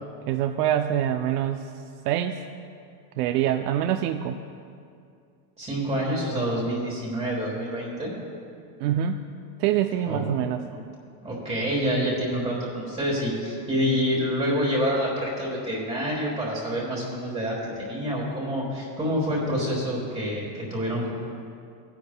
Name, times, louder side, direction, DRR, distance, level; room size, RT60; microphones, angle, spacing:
voice 1, 0.3-1.6 2.1-2.4 3.2-4.4 8.8-9.2 9.6-10.6, right 10 dB, 70° right, 6 dB, 0.6 m, -25 dB
voice 2, 5.6-8.1 10.1-10.2 11.2-21.1, equal, 15° right, -5 dB, 1.3 m, -27 dB
17.0 x 10.0 x 2.2 m, 2.4 s
supercardioid pair, 165°, 48 cm